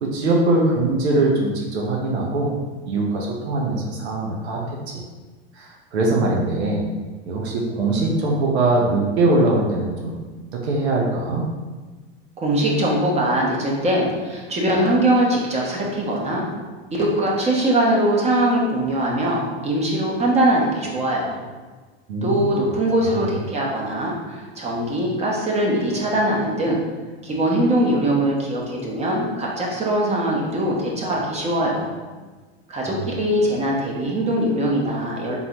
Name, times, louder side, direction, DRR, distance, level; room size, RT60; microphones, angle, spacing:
voice 1, 0.0-2.5 2.9-5.0 5.5-6.8 7.3-10.2 10.5-11.4 22.1-22.5 23.0-23.3 32.8-33.0, right 2 dB, 85° right, -1 dB, 0.9 m, -22 dB
voice 2, 12.4-16.5 16.9-21.4 22.2-26.8 27.2-32.0 32.7-35.4, right 1 dB, 20° right, -3 dB, 0.9 m, -21 dB
3.9 x 3.7 x 2.9 m, 1.3 s
supercardioid pair, 120°, 32 cm